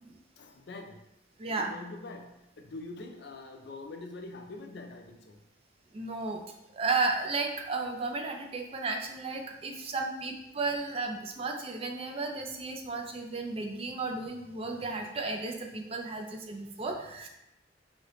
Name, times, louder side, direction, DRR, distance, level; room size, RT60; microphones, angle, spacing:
voice 1, 0.4-1.0 1.5-5.4 9.5-9.6, left 2 dB, 55° left, 4 dB, 0.4 m, -44 dB
voice 2, 1.4-1.7 5.9-6.4 6.7-17.3, right 3 dB, 30° right, 3 dB, 0.3 m, -33 dB
3.1 x 2.7 x 3.0 m, 0.89 s
head